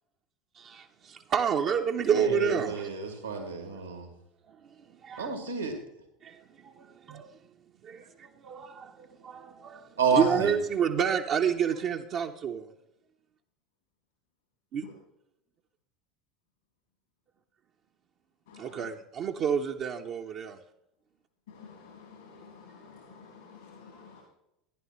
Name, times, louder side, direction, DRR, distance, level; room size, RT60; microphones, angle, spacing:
voice 1, 0.5-2.9 3.7-3.8 4.5-5.3 6.2-7.4 7.8-12.7 14.7-14.8 18.6-20.6, right 7 dB, 45° right, 0.7 m, -30 dB
voice 2, 2.1-4.1 5.2-5.7 10.0-10.5, right 4 dB, 85° right, 2.3 m, -29 dB
voice 3, 21.6-24.2, left 5 dB, 75° left, 2.5 m, -51 dB
15.0 x 10.5 x 3.1 m
figure-of-eight pair, 70°, 0 cm